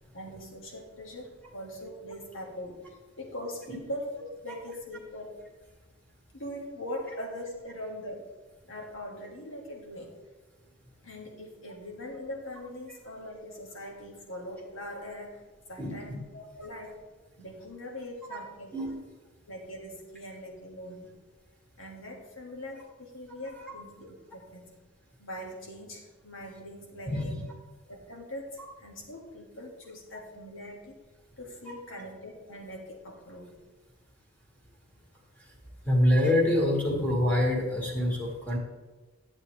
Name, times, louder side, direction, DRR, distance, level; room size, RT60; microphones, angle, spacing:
voice 1, 0.1-2.8 3.2-5.4 6.3-8.3 8.7-10.2 11.0-15.4 15.7-17.0 17.4-18.8 19.5-21.1 21.8-24.7 25.2-27.4 27.9-31.0 31.4-33.7, left 1 dB, 75° left, 0 dB, 2.0 m, -41 dB
voice 2, 15.8-16.2 18.3-18.4 18.7-19.0 23.5-23.7 27.1-27.3 31.6-31.7 35.4-35.5 35.8-38.6, left 1 dB, 10° left, -3 dB, 1.8 m, -26 dB
11.5 x 7.4 x 3.3 m, 1.3 s
head